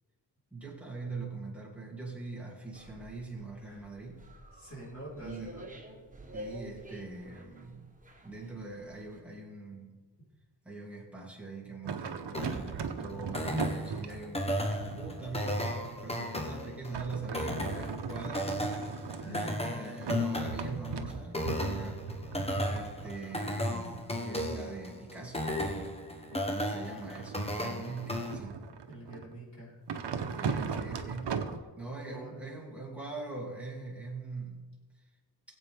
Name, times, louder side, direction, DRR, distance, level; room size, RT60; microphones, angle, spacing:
voice 1, 0.5-4.2 5.2-5.6 6.3-7.9 8.2-9.9 10.6-14.6 15.0-18.5 19.2-22.4 22.7-25.4 25.7-25.9 26.5-28.6 30.3-31.3 31.8-34.7, right 3 dB, 5° right, -4 dB, 2.8 m, -43 dB
sound 1, 2.7-9.2, right 1 dB, 20° right, 1.3 m, -49 dB
voice 2, 3.6-3.9 4.5-5.8 19.2-19.9 28.9-29.8 30.6-31.0 32.0-32.5, right 1 dB, 40° left, -7 dB, 4.2 m, -46 dB
sound 2, 11.8-16.3 16.9-19.6 20.0-24.6 26.3-29.4 29.9-31.6, right 6 dB, 85° right, 1.0 m, -38 dB
sound 3, 12.3-28.3, left 1 dB, 15° left, 1.1 m, -35 dB
20.0 x 8.1 x 3.6 m, 1.3 s
wide cardioid pair, 150°, 41 cm